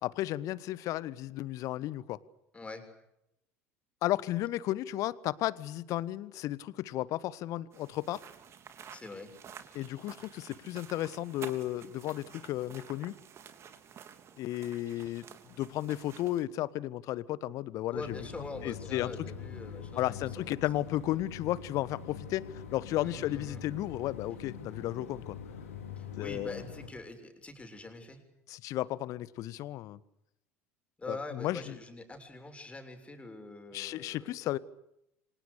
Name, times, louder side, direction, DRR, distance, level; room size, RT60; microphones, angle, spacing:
voice 1, 0.0-2.2 4.0-8.2 9.7-13.2 14.4-15.2 15.6-18.2 18.6-19.1 20.0-25.4 26.2-26.6 28.5-30.0 31.1-31.7 33.7-34.6, left 14 dB, 50° left, 19 dB, 1.3 m, -34 dB
voice 2, 2.5-2.9 8.9-9.4 17.9-20.8 23.0-23.6 26.0-28.2 31.0-34.3, left 2 dB, 15° left, 6 dB, 7.1 m, -44 dB
sound 1, 7.7-16.4, right 8 dB, 35° right, 3.5 m, -51 dB
sound 2, 17.9-26.9, left 7 dB, 75° left, 4.6 m, -44 dB
30.0 x 26.0 x 6.8 m, 0.83 s
figure-of-eight pair, 65°, 8 cm